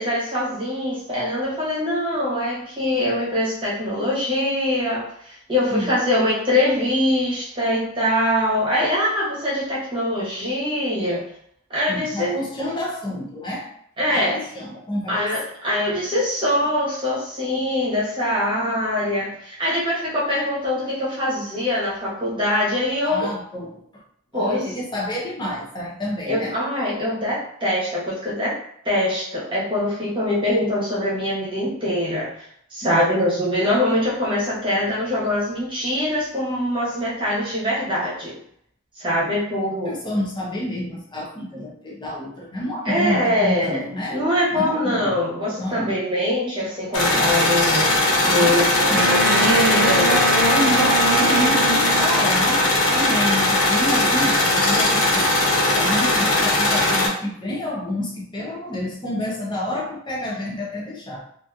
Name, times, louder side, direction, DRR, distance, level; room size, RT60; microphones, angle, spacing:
voice 1, 0.0-11.3 11.7-12.4 14.0-14.4 15.1-23.3 24.3-24.8 26.3-28.6 28.8-38.4 38.9-39.9 42.8-43.8 44.1-50.1, left 1 dB, 25° right, -8 dB, 1.1 m, -23 dB
voice 2, 11.9-13.7 14.1-15.2 23.0-23.8 24.3-26.6 32.8-32.9 39.2-39.3 39.8-44.2 44.5-45.2 45.6-46.0 48.2-49.1 49.7-55.3 55.7-61.2, left 1 dB, 20° left, -3 dB, 0.7 m, -28 dB
sound 1, 46.9-57.1, left 1 dB, 75° left, 0.7 m, -19 dB
Wind instrument woodwind instrument, 48.9-52.4, right 2 dB, 55° right, 0.5 m, -23 dB
3.0 x 2.6 x 2.4 m, 0.68 s
head